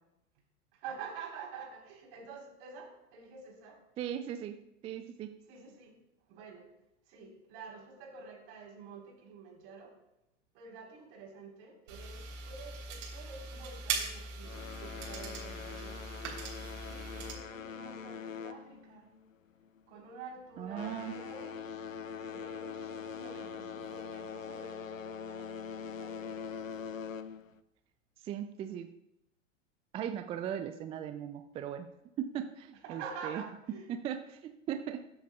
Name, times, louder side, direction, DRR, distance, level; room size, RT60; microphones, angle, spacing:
voice 1, 0.7-3.8 5.5-6.0 6.3-6.7 7.1-10.0 10.5-16.0 16.8-19.1 19.9-21.7 22.2-26.6 32.8-33.9, right 5 dB, 50° right, -1 dB, 4.0 m, -48 dB
voice 2, 4.0-4.6 4.8-5.3 20.6-21.1 28.2-28.9 29.9-31.9 32.2-33.4 34.0-35.0, right 9 dB, 15° right, 8 dB, 0.3 m, -38 dB
sound 1, 11.9-17.3, right 4 dB, 65° right, 3.7 m, -40 dB
sound 2, 14.4-19.3 19.6-20.0 20.5-27.6, left 7 dB, 90° left, 0.6 m, -43 dB
21.5 x 7.8 x 2.4 m, 0.87 s
hypercardioid pair, 95°, 39 cm